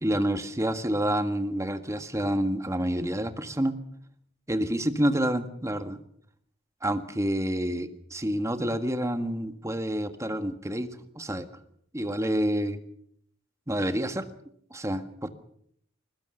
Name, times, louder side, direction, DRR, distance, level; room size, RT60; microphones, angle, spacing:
voice 1, 0.0-3.8 4.5-6.0 6.8-11.5 11.9-12.8 13.7-14.2 14.7-15.3, right 1 dB, 15° right, 8 dB, 1.6 m, -28 dB
22.0 x 21.0 x 6.8 m, 0.66 s
head